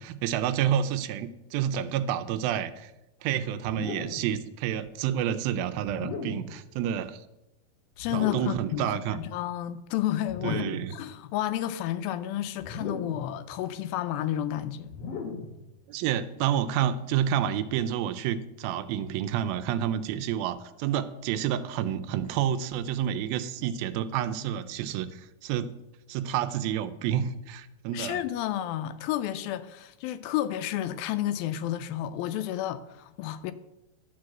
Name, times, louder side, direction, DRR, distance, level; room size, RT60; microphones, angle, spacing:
voice 1, 0.0-2.9 3.2-7.2 8.1-9.2 10.4-11.0 15.9-25.7 26.1-28.2, right 10 dB, 85° right, 2.4 m, -29 dB
sound 1, 3.6-4.3 5.9-6.6 8.0-8.7 10.3-11.0 12.6-13.3 14.9-15.6, left 4 dB, 60° left, 1.8 m, -37 dB
voice 2, 8.0-10.7 10.9-15.0 27.9-33.5, left 12 dB, 85° left, 2.3 m, -31 dB
11.5 x 4.8 x 7.6 m
omnidirectional pair, 4.2 m